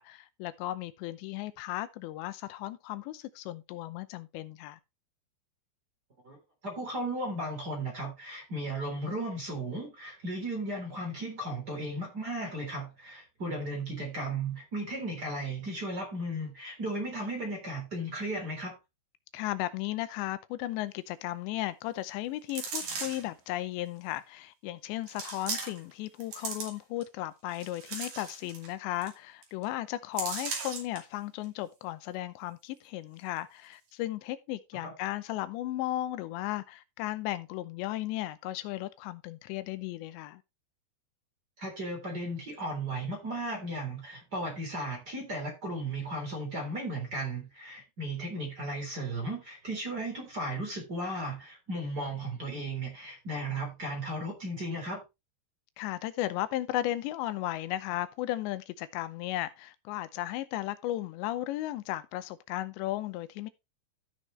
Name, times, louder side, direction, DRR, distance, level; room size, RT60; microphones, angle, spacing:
voice 1, 0.0-4.8 19.3-40.4 55.8-63.5, left 15 dB, 85° left, 3.0 m, -35 dB
voice 2, 6.6-18.8 34.8-34.9 41.6-55.0, right 1 dB, 25° right, 3.5 m, -35 dB
sound 1, 22.5-23.3 24.1-24.2 25.1-25.9 26.2-27.0 27.5-28.7 29.0-29.1 29.4-29.6 30.2-31.0 31.4-31.5, right 4 dB, 50° right, 3.6 m, -37 dB
14.0 x 6.4 x 3.2 m
omnidirectional pair, 5.0 m